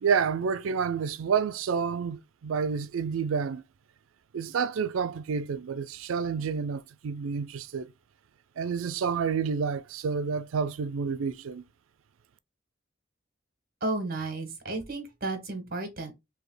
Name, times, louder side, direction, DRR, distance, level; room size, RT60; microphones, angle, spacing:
voice 1, 0.0-3.6 4.3-7.9 8.6-11.6, right 6 dB, 90° right, 0.4 m, -29 dB
voice 2, 13.8-16.1, right 2 dB, 45° right, 1.3 m, -33 dB
3.5 x 2.8 x 3.8 m
head